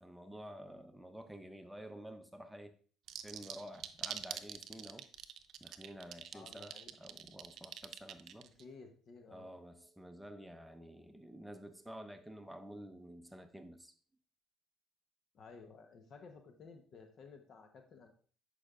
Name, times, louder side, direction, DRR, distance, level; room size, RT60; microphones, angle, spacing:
voice 1, 0.0-2.7 3.2-5.1 5.6-8.5 9.3-13.9, equal, 5° right, 0.7 m, -50 dB
sound 1, 3.1-8.6, right 10 dB, 60° right, 0.6 m, -45 dB
voice 2, 6.3-6.9 8.4-9.5 15.3-18.1, left 4 dB, 55° left, 0.9 m, -55 dB
9.8 x 5.2 x 2.4 m
supercardioid pair, 80°, 0 cm